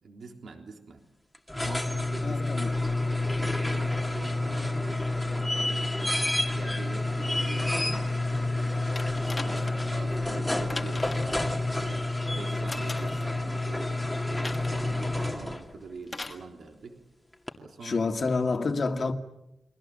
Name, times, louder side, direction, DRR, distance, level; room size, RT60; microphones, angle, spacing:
voice 1, 0.0-1.0 1.6-2.6 3.4-8.8 9.3-17.0 17.6-18.4, right 4 dB, 65° right, 3.6 m, -44 dB
sound 1, 1.3-15.7 17.5-17.6, left 2 dB, 5° left, 2.2 m, -29 dB
voice 2, 2.2-2.7 17.8-19.1, left 4 dB, 40° left, 2.1 m, -28 dB
sound 2, 9.0-9.9 10.7-11.4 12.7-13.3 14.4-14.8 16.1-16.4 17.5-17.6, left 3 dB, 25° left, 1.7 m, -39 dB
29.5 x 23.0 x 7.7 m
wide cardioid pair, 140°, 0 cm